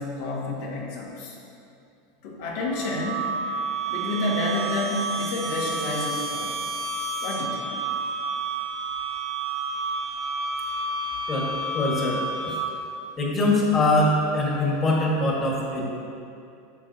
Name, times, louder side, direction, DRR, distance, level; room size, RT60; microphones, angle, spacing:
voice 1, 0.0-1.4 2.2-3.3 3.9-6.6 7.2-7.7, left 2 dB, 75° left, -4 dB, 2.1 m, -29 dB
sound 1, 2.6-12.9, right 3 dB, 50° right, 1.2 m, -30 dB
voice 2, 11.3-12.2 12.5-12.6 13.2-15.8, left 2 dB, 25° left, -3 dB, 1.7 m, -23 dB
11.0 x 7.1 x 2.9 m, 2.6 s
supercardioid pair, 125°, 0 cm